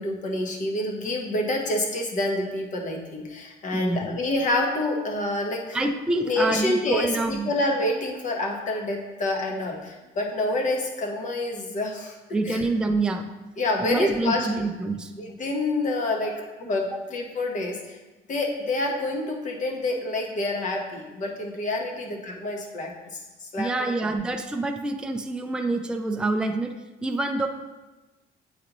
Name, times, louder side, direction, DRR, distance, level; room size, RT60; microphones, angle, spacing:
voice 1, 0.0-5.8 6.2-12.2 12.4-12.6 13.6-14.7 15.2-16.3 16.6-18.0 18.3-24.1, left 2 dB, 50° left, 1 dB, 1.2 m, -27 dB
voice 2, 3.7-4.2 5.7-7.5 12.3-13.3 13.8-15.1 16.2-16.4 23.6-26.7 27.0-27.5, right 2 dB, 5° right, 4 dB, 0.4 m, -27 dB
8.4 x 4.0 x 3.0 m, 1.1 s
cardioid pair, 110°, 17 cm